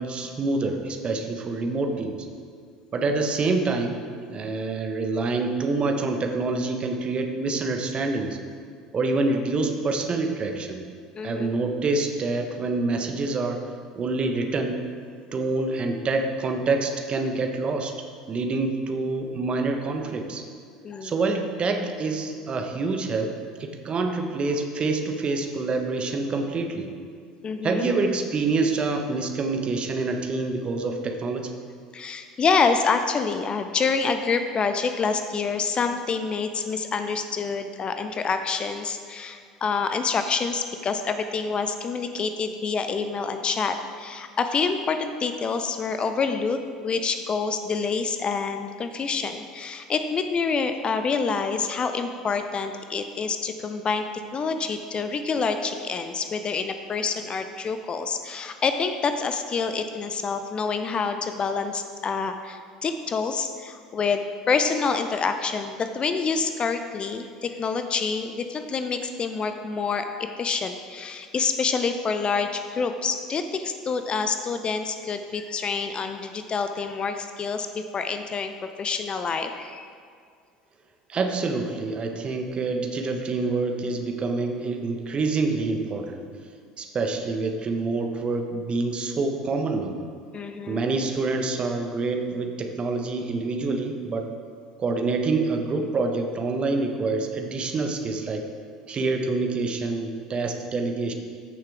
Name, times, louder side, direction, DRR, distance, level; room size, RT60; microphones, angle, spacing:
voice 1, 0.0-2.1 2.9-3.9 4.3-8.4 8.9-10.8 11.2-13.6 13.9-14.8 15.3-17.9 18.3-20.5 21.0-23.3 23.6-26.9 27.6-31.5 81.1-86.2 86.8-90.0 90.7-94.3 94.8-98.5 98.9-101.1, right 3 dB, 30° right, 4 dB, 1.1 m, -26 dB
voice 2, 11.2-11.5 20.8-21.1 27.4-27.9 31.9-54.1 54.3-79.9 90.3-90.9, left 5 dB, 30° left, 8 dB, 0.5 m, -27 dB
14.0 x 6.5 x 3.5 m, 2.1 s
figure-of-eight pair, 70°, 3 cm